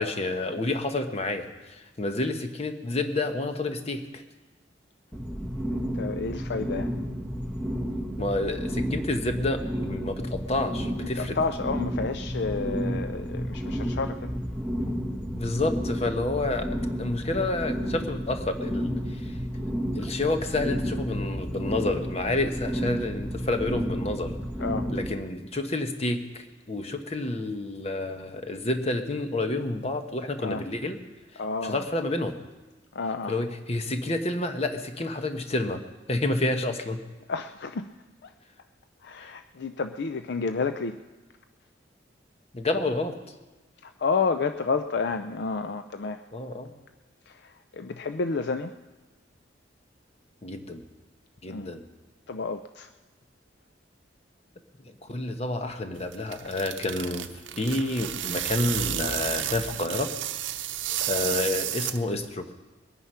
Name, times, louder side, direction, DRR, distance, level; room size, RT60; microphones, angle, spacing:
voice 1, 0.0-4.2 8.2-11.4 15.3-19.4 19.9-24.3 24.9-31.0 31.3-32.3 33.3-35.8 36.1-37.0 42.5-43.2 46.3-46.7 50.4-50.8 51.4-51.8 55.0-60.1 61.0-62.5, left 2 dB, 35° left, 7 dB, 1.1 m, -29 dB
sound 1, 5.1-25.1, equal, 5° left, 1.4 m, -31 dB
voice 2, 5.6-6.9 11.2-14.3 24.6-24.9 30.4-30.6 31.4-31.8 32.9-33.5 37.3-37.9 38.2-38.3 39.0-41.0 43.8-46.2 47.3-48.7 51.5-51.7 52.3-52.9, left 4 dB, 60° left, 9 dB, 0.5 m, -30 dB
sound 2, 56.0-62.3, right 11 dB, 85° right, 0.7 m, -32 dB
21.5 x 9.3 x 5.6 m, 1.2 s
head